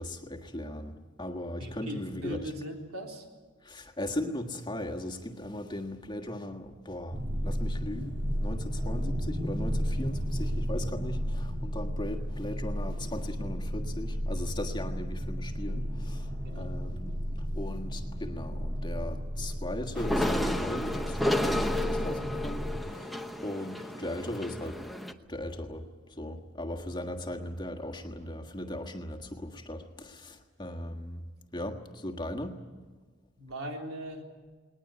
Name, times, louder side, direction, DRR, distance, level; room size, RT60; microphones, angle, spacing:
voice 1, 0.0-2.5 3.6-7.2 7.4-16.3 16.5-17.2 17.5-23.1 23.4-24.8 25.3-25.8 26.2-31.2 31.5-32.6, left 1 dB, 20° left, 3 dB, 1.5 m, -38 dB
voice 2, 1.6-3.3 16.4-16.7 33.4-34.3, equal, 85° right, 1 dB, 3.8 m, -39 dB
sound 1, 7.1-22.8, equal, 50° right, 2.3 m, -33 dB
sound 2, 19.9-25.1, left 1 dB, ahead, 0.9 m, -32 dB
20.5 x 19.5 x 9.5 m, 1.4 s
head